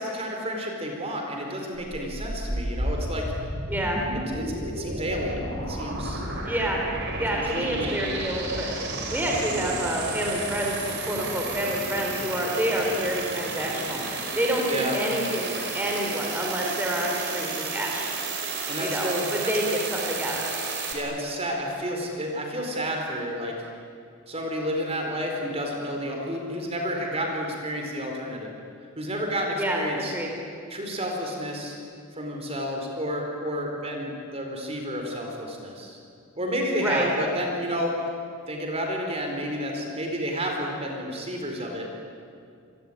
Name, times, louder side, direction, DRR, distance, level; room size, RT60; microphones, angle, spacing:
voice 1, 0.0-3.3 4.3-5.4 5.7-6.2 7.3-8.0 9.5-9.8 14.7-15.0 18.7-19.5 20.9-23.7 24.3-28.5 29.0-30.1 30.7-31.8 32.1-36.0 36.4-38.1 38.5-42.1, equal, 30° right, 2 dB, 4.4 m, -31 dB
sound 1, 1.8-20.9, right 3 dB, 55° right, 5.1 m, -32 dB
voice 2, 3.7-4.0 6.5-6.8 7.2-8.7 9.1-10.7 11.1-18.1 18.8-20.6 29.6-30.3 36.8-37.1, equal, 10° right, -1 dB, 4.2 m, -28 dB
27.5 x 22.0 x 9.9 m, 2.4 s
head